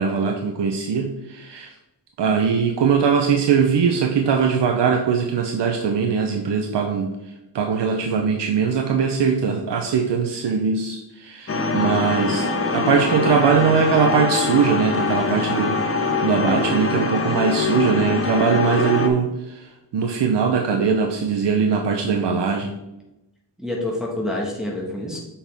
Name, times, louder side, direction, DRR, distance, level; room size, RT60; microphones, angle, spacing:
voice 1, 0.0-1.7 2.2-12.5 12.7-22.7, right 6 dB, 75° right, 4 dB, 0.8 m, -21 dB
sound 1, 11.5-19.1, left 3 dB, 30° left, 1.0 m, -23 dB
voice 2, 16.4-16.8 23.6-25.2, left 1 dB, ahead, -3 dB, 1.6 m, -27 dB
7.0 x 5.6 x 3.5 m, 0.94 s
cardioid pair, 80°, 42 cm